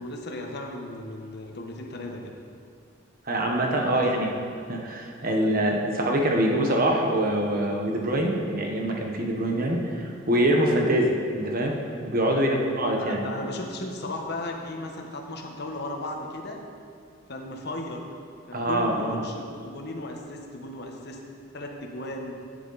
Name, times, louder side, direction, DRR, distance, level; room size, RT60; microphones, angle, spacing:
voice 1, 0.0-2.3 3.9-4.2 5.3-5.7 12.3-12.7 13.0-16.6 17.3-18.1 18.5-21.2 21.5-22.4, left 1 dB, 60° left, 1 dB, 1.1 m, -36 dB
voice 2, 3.3-4.3 4.7-11.7 12.1-13.3 18.5-19.2, right 1 dB, 50° right, 1 dB, 1.2 m, -24 dB
11.0 x 8.2 x 4.1 m, 2.3 s
head